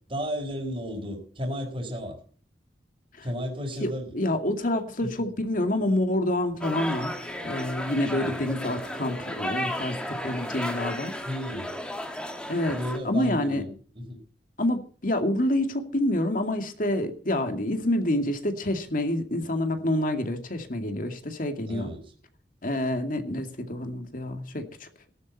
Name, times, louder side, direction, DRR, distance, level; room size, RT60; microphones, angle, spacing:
voice 1, 0.1-2.2 3.2-4.1 5.0-5.1 8.1-8.3 11.2-11.7 12.7-14.2 21.6-22.1, equal, 30° right, 0 dB, 4.3 m, -33 dB
voice 2, 3.8-11.1 12.5-12.8 13.0-13.6 14.6-21.9 22.6-24.9, left 1 dB, 50° left, 6 dB, 2.3 m, -27 dB
sound 1, 6.6-13.0, equal, 5° left, 2.2 m, -34 dB
18.5 x 12.0 x 4.2 m, 0.43 s
head